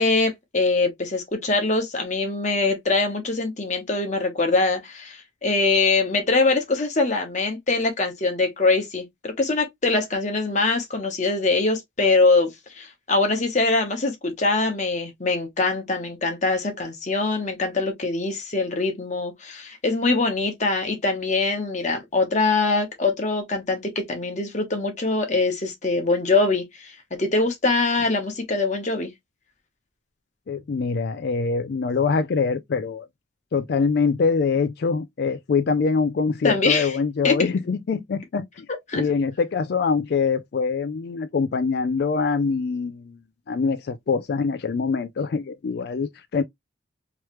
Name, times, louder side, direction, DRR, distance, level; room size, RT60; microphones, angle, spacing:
voice 1, 0.0-29.1 36.4-37.0 37.2-37.3 38.9-39.0, left 3 dB, 40° left, 1.1 m, -23 dB
voice 2, 30.5-33.1 33.5-38.7 39.0-43.2 43.5-46.4, left 5 dB, 55° left, 0.3 m, -24 dB
3.2 x 3.2 x 3.0 m
head